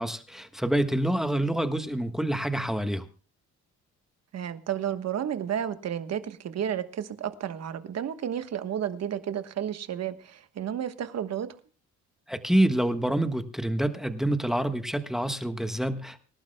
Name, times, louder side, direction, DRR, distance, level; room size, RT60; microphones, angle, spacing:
voice 1, 0.0-3.1 12.3-16.2, right 1 dB, ahead, 1.3 m, -27 dB
voice 2, 4.3-11.5, right 9 dB, 60° right, 1.3 m, -32 dB
25.5 x 11.5 x 2.2 m
cardioid pair, 90°, 30 cm